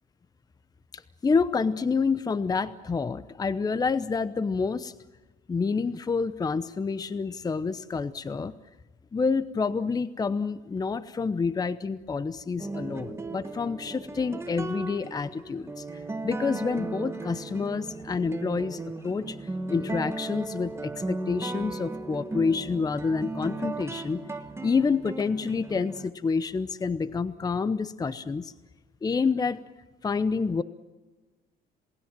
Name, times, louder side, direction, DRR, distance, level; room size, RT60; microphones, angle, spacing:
voice 1, 0.9-4.9 5.5-8.5 9.1-28.5 29.0-29.6 30.0-30.6, left 4 dB, 20° left, 14 dB, 0.8 m, -28 dB
sound 1, 12.6-26.1, right 3 dB, 15° right, 1.5 m, -36 dB
27.5 x 19.0 x 7.5 m, 1.2 s
cardioid pair, 110°, 17 cm